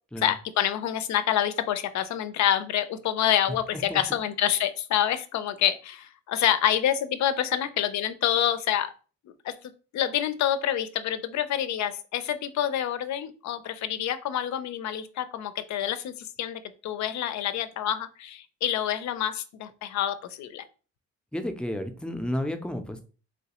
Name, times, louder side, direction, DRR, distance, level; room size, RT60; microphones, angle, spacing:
voice 1, 0.2-8.9 9.3-9.6 9.9-20.6, left 10 dB, 65° left, 12 dB, 0.5 m, -27 dB
voice 2, 21.3-23.0, left 1 dB, 5° left, 7 dB, 0.5 m, -31 dB
3.1 x 3.1 x 2.9 m, 0.37 s
cardioid pair, 90°, 30 cm